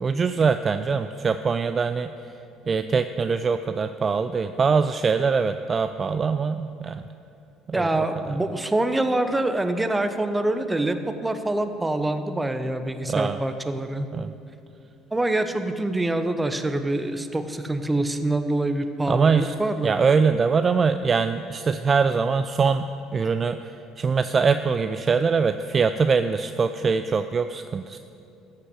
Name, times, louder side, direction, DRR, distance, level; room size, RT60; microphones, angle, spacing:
voice 1, 0.0-2.3 2.7-7.1 7.8-8.4 13.1-13.4 14.1-14.3 19.1-19.5 19.8-28.0, right 5 dB, 35° right, 10 dB, 0.4 m, -23 dB
voice 2, 7.7-14.1 15.1-19.9, right 2 dB, 15° right, 9 dB, 0.9 m, -25 dB
13.5 x 5.9 x 8.0 m, 2.7 s
hypercardioid pair, 60°, 0 cm